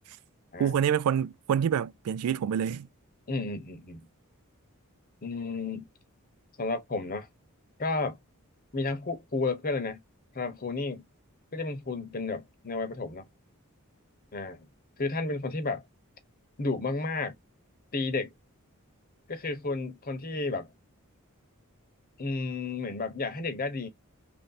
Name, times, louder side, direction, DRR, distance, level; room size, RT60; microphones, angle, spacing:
voice 1, 0.6-2.9, right 8 dB, 85° right, 0.3 m, -27 dB
voice 2, 3.3-4.1 5.2-5.9 6.6-7.3 7.8-8.2 8.7-10.0 10.3-11.0 11.5-13.2 14.3-14.6 15.0-15.8 16.6-17.3 17.9-18.3 19.3-20.7 22.2-23.9, left 3 dB, 40° left, 0.9 m, -32 dB
3.2 x 2.7 x 4.0 m
head